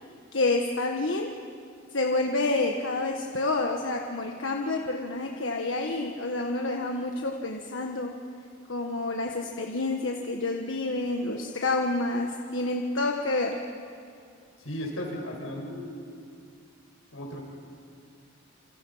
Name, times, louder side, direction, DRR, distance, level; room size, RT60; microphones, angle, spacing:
voice 1, 0.3-1.3 1.9-8.1 8.7-13.6, left 2 dB, 70° left, 2 dB, 1.5 m, -28 dB
voice 2, 14.6-16.1 17.1-17.4, equal, 90° left, 1 dB, 6.1 m, -35 dB
28.5 x 28.0 x 5.7 m, 2.4 s
head